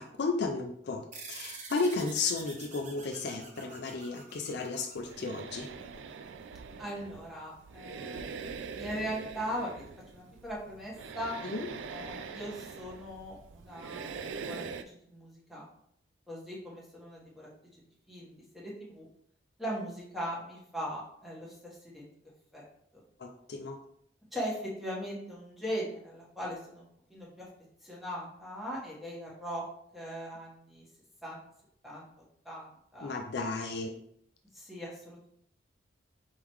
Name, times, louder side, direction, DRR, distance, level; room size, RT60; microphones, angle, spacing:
voice 1, 0.0-5.7 11.4-11.7 23.2-23.8 33.0-33.9, left 3 dB, 60° left, 4 dB, 0.4 m, -34 dB
sound 1, 1.1-6.0, right 4 dB, 40° right, 0.7 m, -47 dB
sound 2, 4.9-14.8, right 5 dB, 75° right, 0.4 m, -43 dB
voice 2, 6.8-8.4 8.8-9.8 10.1-11.4 11.9-15.7 16.3-17.5 18.1-19.1 19.6-22.1 22.5-22.6 24.3-27.5 27.8-29.6 29.9-30.8 31.2-31.4 31.8-32.1 32.4-33.1 34.5-35.3, equal, ahead, -5 dB, 1.2 m, -39 dB
4.6 x 3.7 x 3.0 m, 0.68 s
head